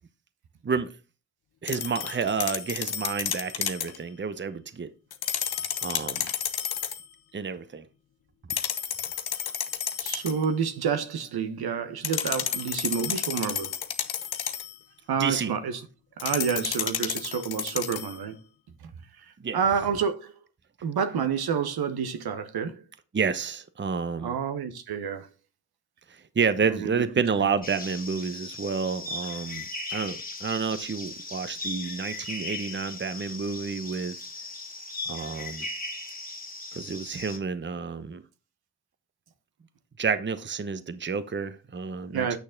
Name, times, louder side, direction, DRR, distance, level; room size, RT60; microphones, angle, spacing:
voice 1, 0.6-1.0 1.6-4.9 5.8-6.3 7.3-7.8 15.2-15.5 19.4-19.6 23.1-24.4 26.1-34.2 35.1-35.7 36.7-38.2 40.0-42.4, right 5 dB, 30° right, 0.9 m, -30 dB
sound 1, 1.7-4.0 5.1-7.1 8.5-10.5 12.0-14.8 16.2-18.2, left 9 dB, 65° left, 1.1 m, -31 dB
voice 2, 10.0-13.7 15.1-15.8 16.2-18.4 19.5-20.3 20.8-22.8 24.2-25.3 26.7-27.0 27.4-27.5 42.1-42.4, right 7 dB, 70° right, 1.2 m, -29 dB
sound 2, 27.6-37.4, left 2 dB, 20° left, 2.2 m, -38 dB
8.4 x 6.4 x 3.8 m
supercardioid pair, 45°, 40 cm